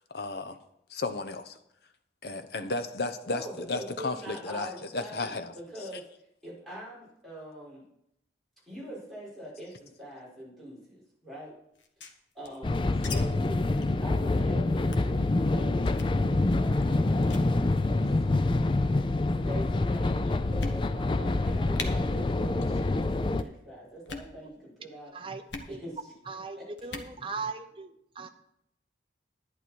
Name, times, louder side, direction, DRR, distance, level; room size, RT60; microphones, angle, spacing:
voice 1, 0.1-0.6 0.9-1.6 2.2-5.5, left 3 dB, 60° left, 0.8 m, -34 dB
voice 2, 3.2-6.1 6.4-7.8 8.7-11.5 12.3-15.2 15.5-18.2 19.4-26.9, right 1 dB, ahead, 5.7 m, -43 dB
sound 1, 11.7-13.2 13.4-13.5 13.8-14.0 14.3-14.5 14.9-15.2 15.9-16.2 16.8-17.0 17.2-17.5 18.4-18.8 19.5-19.6 20.1-20.2 20.6-21.1 21.4-21.5 21.7-21.9 22.5-22.8 23.1-23.5 24.0-24.3 25.5-25.7 26.8-27.1, left 4 dB, 80° left, 1.3 m, -40 dB
sound 2, 12.6-23.4, left 2 dB, 25° left, 0.4 m, -26 dB
voice 3, 26.3-28.3, right 4 dB, 30° right, 0.7 m, -38 dB
11.0 x 9.9 x 4.5 m
head